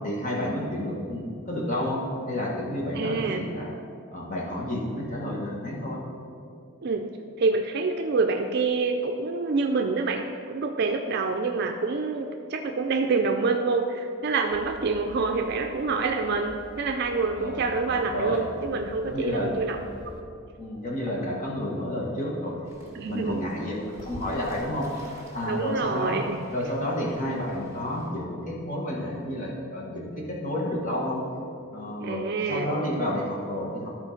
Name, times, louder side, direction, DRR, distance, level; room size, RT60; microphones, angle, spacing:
voice 1, 0.0-3.8 4.1-6.0 17.3-18.4 19.0-19.6 20.6-22.7 23.1-24.9 25.3-26.2 26.5-31.2 31.7-33.9, left 1 dB, 40° left, -3 dB, 1.3 m, -30 dB
voice 2, 2.9-3.4 6.8-7.0 7.4-19.8 22.9-23.5 25.5-26.4 32.0-32.7, right 4 dB, 55° right, 5 dB, 0.4 m, -27 dB
sound 1, 14.5-20.2, equal, 20° left, 0.6 m, -47 dB
Fowl / Bird, 22.6-28.1, equal, 15° right, 2.2 m, -46 dB
11.5 x 4.5 x 5.7 m, 2.5 s
head